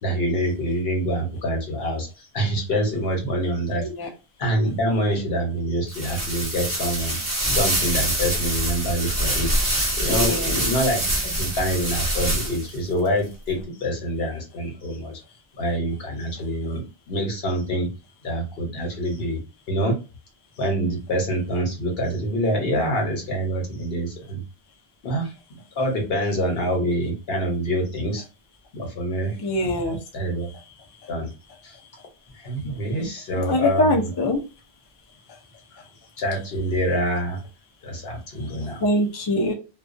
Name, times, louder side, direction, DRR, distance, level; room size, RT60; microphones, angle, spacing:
voice 1, 0.0-3.9 4.4-7.2 7.5-9.6 10.0-15.2 15.6-17.9 18.2-19.4 19.7-20.0 20.6-24.4 25.0-25.3 25.8-28.2 28.7-29.3 30.1-30.5 31.1-31.3 31.6-31.7 32.3-34.1 36.2-37.4 37.8-38.8, equal, 65° left, 1.0 m, -26 dB
sound 1, 5.9-12.8, right 1 dB, 20° right, 0.8 m, -25 dB
voice 2, 10.1-10.5 29.4-30.0 33.0-33.1 33.4-34.4 38.8-39.5, left 1 dB, 40° left, 0.3 m, -23 dB
2.3 x 2.2 x 2.5 m
omnidirectional pair, 1.1 m